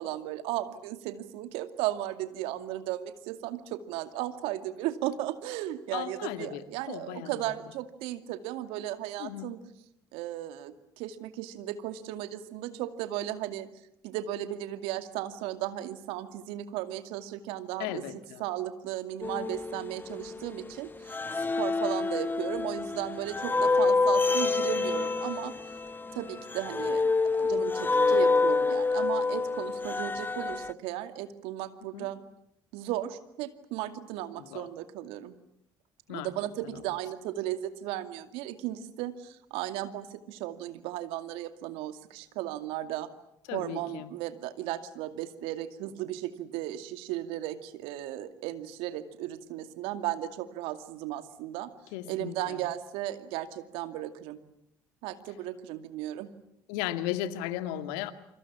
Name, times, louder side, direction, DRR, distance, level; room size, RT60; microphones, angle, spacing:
voice 1, 0.0-9.6 10.1-13.7 14.0-18.0 18.4-25.5 26.2-32.2 32.7-35.3 36.1-43.1 43.5-51.7 52.1-54.4 55.0-56.3, right 13 dB, 75° right, 10 dB, 2.4 m, -35 dB
voice 2, 5.9-7.5 9.2-9.5 17.8-18.4 31.9-32.1 34.4-34.7 36.1-36.3 36.6-36.7 43.5-44.1 51.9-52.6 56.7-58.1, left 13 dB, 80° left, 11 dB, 2.1 m, -36 dB
sound 1, 19.2-20.7 21.1-30.7, left 3 dB, 20° left, 1.1 m, -27 dB
28.5 x 25.5 x 7.3 m, 0.77 s
hypercardioid pair, 60°, 10 cm